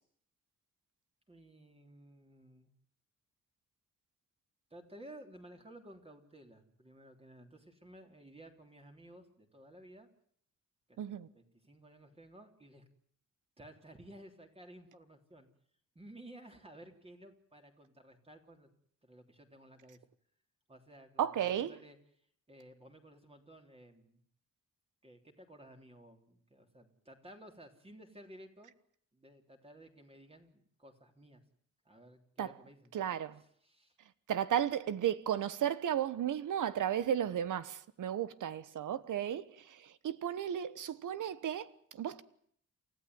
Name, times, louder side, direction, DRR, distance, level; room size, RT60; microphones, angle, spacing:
voice 1, 1.3-2.7 4.7-10.1 10.9-12.8 13.6-15.5 16.0-18.7 19.0-20.1 20.7-22.0 22.5-24.2 25.0-28.7 29.1-31.4 31.9-32.9 33.4-34.0, right 1 dB, 20° right, 3.5 m, -55 dB
voice 2, 11.0-11.3 21.2-21.7 32.4-32.5 32.9-33.4 34.3-42.2, right 10 dB, 80° right, 1.2 m, -34 dB
28.5 x 14.5 x 9.6 m
wide cardioid pair, 130°, 31 cm